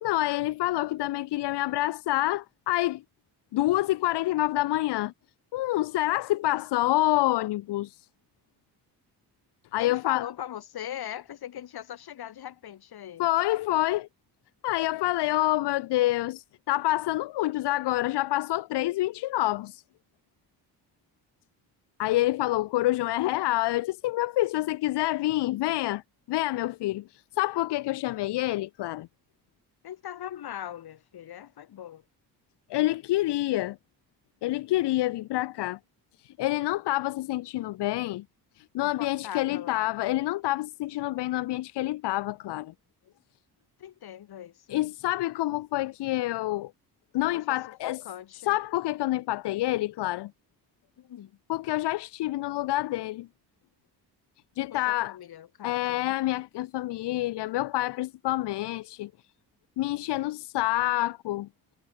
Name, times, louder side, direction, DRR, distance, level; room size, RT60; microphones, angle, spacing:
voice 1, 0.0-3.0 3.5-5.1 5.5-8.0 9.7-10.3 13.2-14.1 14.6-19.8 22.0-26.0 26.3-29.1 32.7-33.8 34.4-35.8 36.2-38.2 38.6-42.7 44.7-46.7 47.1-48.0 48.5-50.3 51.5-53.3 54.6-55.2 55.6-59.1 59.8-61.5, left 16 dB, 90° left, 1.5 m, -27 dB
voice 2, 9.8-13.3 29.8-32.0 38.8-39.9 43.0-43.1 43.8-44.9 47.2-47.4 47.8-48.6 51.0-51.4 54.7-56.2, left 11 dB, 70° left, 6.1 m, -40 dB
cardioid pair, 100°, 40 cm